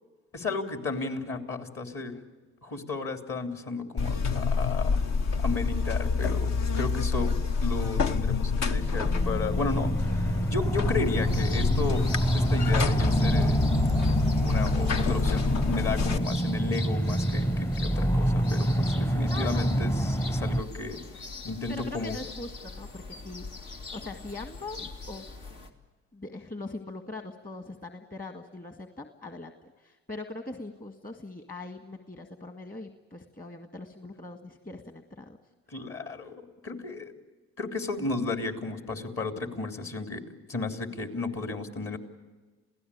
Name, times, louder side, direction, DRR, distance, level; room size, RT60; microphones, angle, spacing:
voice 1, 0.3-2.1 2.6-5.0 5.4-7.3 7.6-12.0 12.3-13.6 14.4-22.2 35.7-37.1 37.6-42.0, left 3 dB, 50° left, 5 dB, 3.5 m, -33 dB
Buzz, 4.0-16.2, left 5 dB, 65° left, 1.2 m, -28 dB
sound 1, 8.8-20.6, right 1 dB, 10° left, 0.6 m, -27 dB
sound 2, 11.0-25.7, left 4 dB, 80° left, 2.6 m, -42 dB
voice 2, 19.3-19.7 19.9-20.2 21.7-25.2 26.1-35.4, left 2 dB, 30° left, 6 dB, 1.9 m, -42 dB
28.0 x 17.0 x 8.6 m, 1.3 s
supercardioid pair, 70°, 30 cm